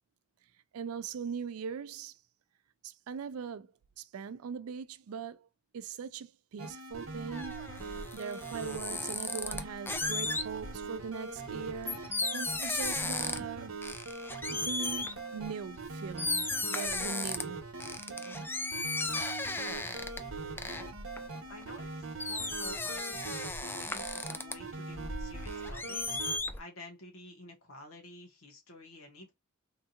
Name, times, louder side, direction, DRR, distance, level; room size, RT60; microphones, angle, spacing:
voice 1, 0.7-2.2 2.8-5.5 5.7-7.7 8.1-13.8 14.5-17.6 18.0-18.5, right 6 dB, 90° right, 0.4 m, -41 dB
sound 1, 6.6-26.4, right 3 dB, 75° right, 1.0 m, -42 dB
sound 2, 6.9-10.9 11.4-13.5 13.8-15.2 15.8-15.9 16.2-17.4 17.8-21.9 22.2-24.5 24.9-26.6, left 3 dB, 10° left, 0.3 m, -36 dB
voice 2, 21.5-26.2 26.6-29.3, left 2 dB, 80° left, 1.2 m, -51 dB
3.6 x 2.8 x 2.4 m
head